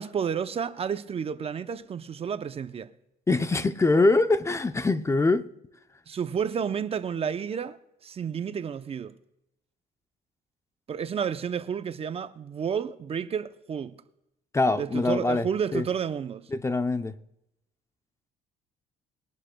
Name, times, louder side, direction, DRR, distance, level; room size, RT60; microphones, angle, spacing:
voice 1, 0.0-2.9 6.1-7.8 8.0-9.2 10.9-14.0 14.7-16.5, right 7 dB, 35° right, 0.6 m, -31 dB
voice 2, 3.3-5.4 14.5-15.5 15.7-15.8 16.5-17.1, left 3 dB, 15° left, 0.6 m, -23 dB
21.0 x 11.5 x 2.2 m
cardioid pair, 110°, 17 cm